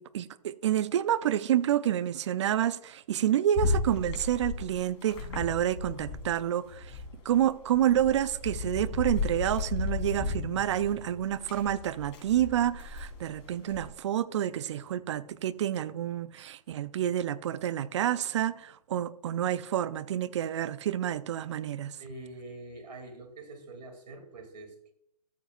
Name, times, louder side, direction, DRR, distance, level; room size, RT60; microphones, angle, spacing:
voice 1, 0.0-6.9 7.3-22.0, right 11 dB, 45° right, 0.4 m, -29 dB
sound 1, 3.5-6.4 6.7-13.9, left 3 dB, 45° left, 3.5 m, -35 dB
voice 2, 22.0-24.9, right 2 dB, 75° right, 2.5 m, -45 dB
13.5 x 7.9 x 2.4 m
hypercardioid pair, 145°, 21 cm